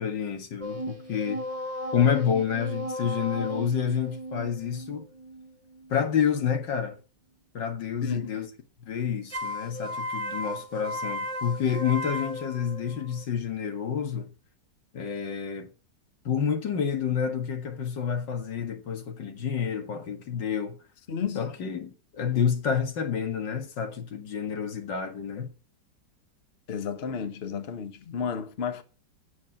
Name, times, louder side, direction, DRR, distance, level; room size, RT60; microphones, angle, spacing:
voice 1, 0.0-1.4 1.9-5.1 5.9-7.0 7.5-8.5 8.9-14.3 14.9-15.7 16.3-20.8 21.4-25.5, left 7 dB, 80° left, 2.3 m, -29 dB
sound 1, 0.6-6.0 9.3-13.2, left 1 dB, 30° right, 0.7 m, -35 dB
voice 2, 8.0-8.3 21.1-21.4 26.7-28.8, left 6 dB, 40° left, 1.2 m, -32 dB
8.4 x 7.5 x 8.7 m
omnidirectional pair, 1.9 m